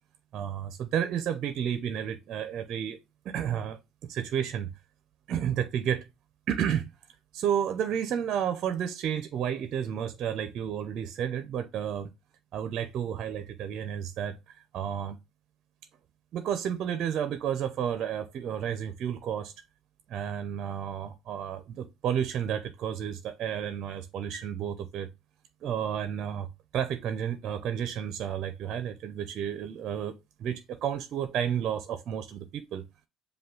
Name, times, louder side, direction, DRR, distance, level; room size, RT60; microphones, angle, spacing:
voice 1, 0.3-3.0 3.2-4.7 5.3-6.1 6.5-6.9 7.3-12.1 12.5-15.2 16.3-19.5 20.1-25.1 25.6-26.5 26.7-30.1 30.4-32.8, right 9 dB, 55° right, 0.5 m, -31 dB
5.3 x 2.2 x 3.7 m
cardioid pair, 110°, 0 cm